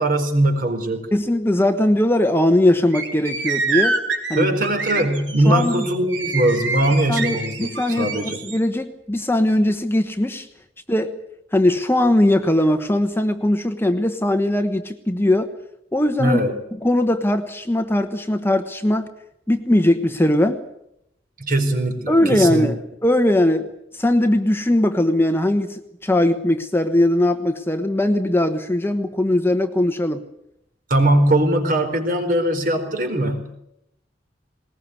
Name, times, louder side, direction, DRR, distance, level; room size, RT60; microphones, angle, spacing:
voice 1, 0.0-1.1 4.4-8.4 16.2-16.5 21.4-22.7 30.9-33.5, right 1 dB, 50° right, 6 dB, 4.4 m, -20 dB
voice 2, 1.1-4.0 4.3-4.5 5.4-5.8 7.1-10.5 10.9-11.2 11.5-15.5 15.9-16.4 16.8-19.1 19.5-20.6 22.1-30.2, left 1 dB, 10° left, 7 dB, 1.1 m, -20 dB
sound 1, 2.9-8.6, right 4 dB, 75° right, 4.7 m, -26 dB
20.0 x 19.5 x 9.6 m, 0.79 s
head